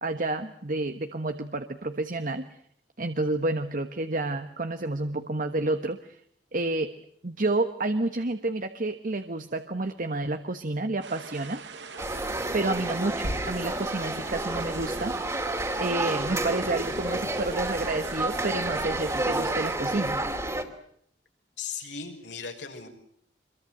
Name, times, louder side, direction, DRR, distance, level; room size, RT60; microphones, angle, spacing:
voice 1, 0.0-2.5 3.0-6.2 6.5-6.9 7.2-11.6 12.5-15.2 15.8-20.2, right 2 dB, 50° right, 8 dB, 1.3 m, -29 dB
sound 1, 11.0-19.8, right 5 dB, 80° right, 2.0 m, -42 dB
sound 2, 12.0-20.6, right 1 dB, 15° right, 2.8 m, -30 dB
voice 2, 21.6-22.9, left 6 dB, 80° left, 3 dB, 6.1 m, -37 dB
26.5 x 22.5 x 7.9 m, 0.68 s
head